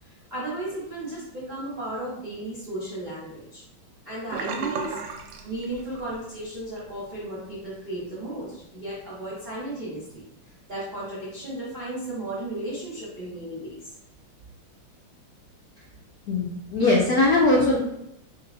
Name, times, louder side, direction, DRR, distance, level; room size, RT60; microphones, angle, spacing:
voice 1, 0.0-3.6 4.0-5.0 5.4-10.2 10.7-13.9, right 1 dB, 30° right, -9 dB, 0.9 m, -34 dB
Sink (filling or washing), 4.3-6.3 6.6-6.9 7.3-7.4, right 5 dB, 90° right, 1.5 m, -33 dB
voice 2, 16.3-17.8, left 2 dB, 90° left, -2 dB, 0.8 m, -20 dB
3.8 x 3.7 x 2.7 m, 0.79 s
omnidirectional pair, 2.4 m